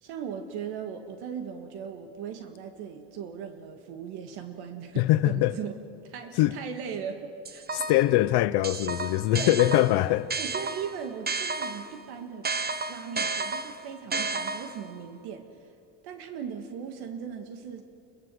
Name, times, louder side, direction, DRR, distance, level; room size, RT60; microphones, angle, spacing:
voice 1, 0.0-5.8 6.0-7.9 9.3-9.8 10.4-12.5 12.9-15.5 16.0-17.8, right 7 dB, 80° right, 1.9 m, -38 dB
voice 2, 5.0-5.5 6.4-6.6 7.7-10.3, left 16 dB, 75° left, 0.7 m, -22 dB
sound 1, 7.5-8.2 8.6-12.0 12.4-14.9, right 4 dB, 25° right, 1.2 m, -32 dB
28.5 x 15.0 x 7.8 m
supercardioid pair, 90°, 39 cm